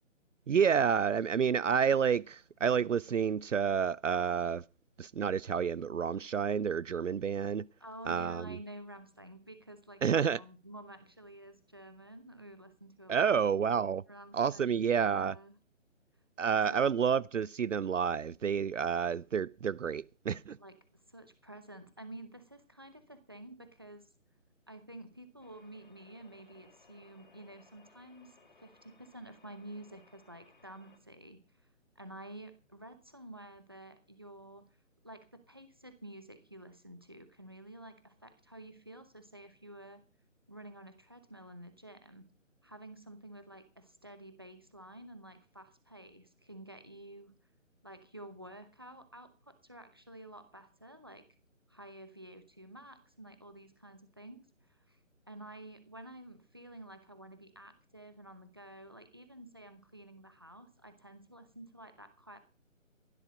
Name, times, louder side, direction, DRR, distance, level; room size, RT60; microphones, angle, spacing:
voice 1, 0.5-4.6 5.0-7.6 8.1-8.6 10.0-10.4 13.1-14.0 14.3-15.4 16.4-20.6, right 7 dB, 65° right, 0.6 m, -29 dB
voice 2, 7.8-13.4 14.1-15.5 16.7-16.8 20.6-24.1 24.7-31.4 32.0-34.7 35.0-40.0 40.5-42.3 42.6-47.3 47.8-51.3 51.7-55.0 55.3-62.4, right 1 dB, 20° right, 0.8 m, -50 dB
sound 1, 25.4-31.0, left 4 dB, 40° left, 2.9 m, -64 dB
13.5 x 12.0 x 5.1 m
hypercardioid pair, 175°, 39 cm